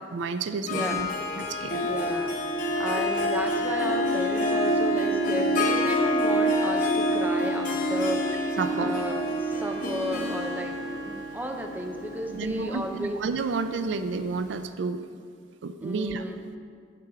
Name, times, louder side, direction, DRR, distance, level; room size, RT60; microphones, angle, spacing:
voice 1, 0.1-1.1 1.4-1.9 8.6-8.9 12.3-15.0 15.6-16.2, right 4 dB, 75° right, 10 dB, 0.4 m, -30 dB
Harp, 0.7-14.2, equal, 45° left, 0.9 m, -27 dB
voice 2, 0.7-1.1 1.8-2.3 2.8-13.1 15.8-16.4, right 1 dB, 10° right, 3 dB, 0.5 m, -34 dB
8.0 x 6.8 x 4.9 m, 2.2 s
head